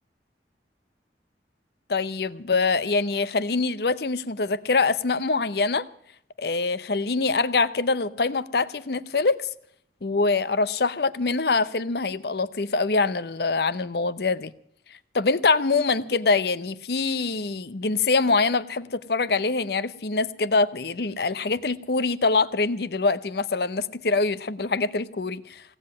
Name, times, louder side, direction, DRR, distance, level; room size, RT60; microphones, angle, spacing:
voice 1, 1.9-5.8 6.4-9.4 10.0-14.5 15.1-25.6, left 3 dB, 60° left, 0.7 m, -24 dB
17.0 x 7.7 x 9.6 m
head